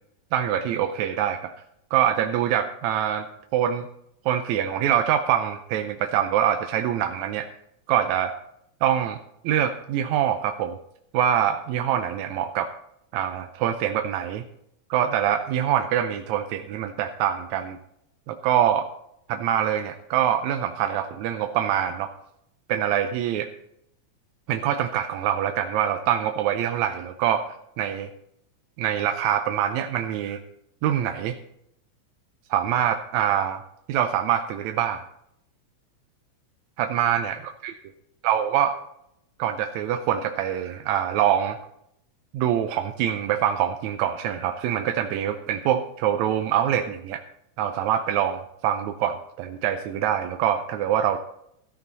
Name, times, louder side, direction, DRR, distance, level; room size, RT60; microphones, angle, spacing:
voice 1, 0.3-1.5 1.9-3.3 3.5-3.9 4.3-7.5 7.9-8.3 8.8-9.2 9.4-10.8 11.1-12.7 13.1-14.4 14.9-17.8 18.3-18.9 19.3-22.1 22.7-23.5 24.5-27.4 27.8-28.1 28.8-30.4 30.8-31.4 32.5-33.6 33.9-35.0 36.8-37.7 38.2-38.8 39.4-41.6 42.3-47.2 47.6-51.2, right 10 dB, 80° right, 7 dB, 1.9 m, -24 dB
13.5 x 11.0 x 4.0 m, 0.78 s
omnidirectional pair, 3.4 m